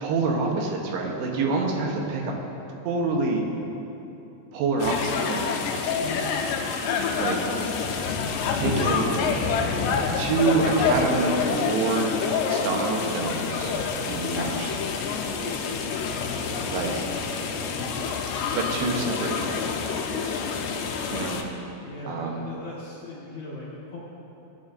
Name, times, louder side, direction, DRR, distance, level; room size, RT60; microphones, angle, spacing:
voice 1, 0.0-2.3 2.8-3.4 4.5-5.4 7.2-7.4 8.5-9.2 10.2-12.2 12.5-13.7 14.1-14.7 16.7-17.1 18.6-19.6 21.1-21.4 22.1-22.5, right 3 dB, 80° right, 0 dB, 3.1 m, -26 dB
sound 1, 4.8-21.4, left 5 dB, 85° left, 2.8 m, -27 dB
voice 2, 6.0-6.4 17.7-18.1 21.8-24.0, left 2 dB, 60° left, -8 dB, 1.8 m, -39 dB
17.5 x 9.6 x 2.6 m, 2.9 s
omnidirectional pair, 4.9 m